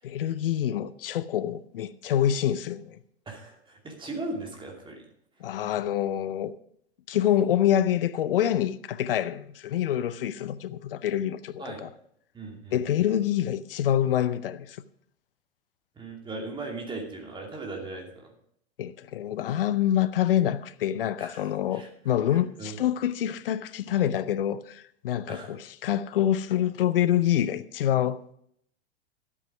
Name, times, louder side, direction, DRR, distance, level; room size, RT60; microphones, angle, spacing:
voice 1, 0.0-3.0 5.4-6.5 7.1-11.9 12.7-14.8 18.8-28.3, left 11 dB, 55° left, 0.7 m, -26 dB
voice 2, 3.3-5.1 11.6-11.9 12.3-12.8 16.0-18.3 21.2-21.9 22.3-22.8 25.3-25.5, right 2 dB, 15° right, 2.6 m, -38 dB
12.0 x 8.6 x 4.9 m
figure-of-eight pair, 95°, 33 cm